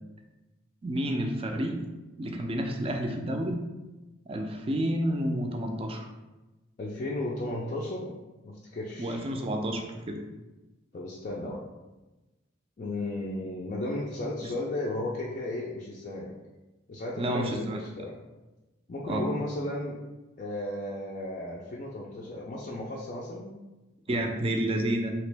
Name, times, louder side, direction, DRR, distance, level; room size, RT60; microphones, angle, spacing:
voice 1, 0.8-1.8 2.2-3.6 4.3-6.1 9.0-10.2 14.4-14.5 17.2-17.8 19.0-19.3 24.1-25.1, right 1 dB, 30° right, 3 dB, 0.4 m, -30 dB
voice 2, 6.8-8.1 8.4-9.2 10.9-11.6 12.8-16.3 16.9-18.2 18.9-20.0 20.4-23.5, left 1 dB, 40° left, -4 dB, 0.4 m, -34 dB
3.0 x 2.9 x 3.3 m, 1.1 s
head